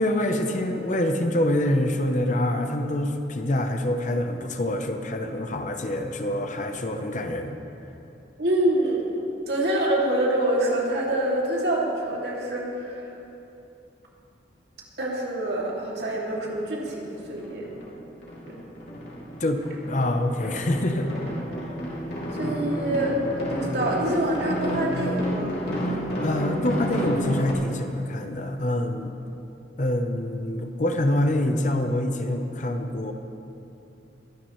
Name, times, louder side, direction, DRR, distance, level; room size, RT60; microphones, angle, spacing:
voice 1, 0.0-7.6 19.4-21.1 25.8-29.1 29.8-33.1, left 1 dB, 45° left, 6 dB, 0.8 m, -26 dB
voice 2, 8.4-9.0 9.5-13.1 15.0-17.6 18.5-18.6 22.4-25.6, right 1 dB, 70° right, -3 dB, 2.6 m, -26 dB
sound 1, 16.3-16.4 16.8-18.0 18.2-27.5, equal, 65° left, 2.8 m, -31 dB
21.5 x 10.5 x 3.2 m, 2.8 s
head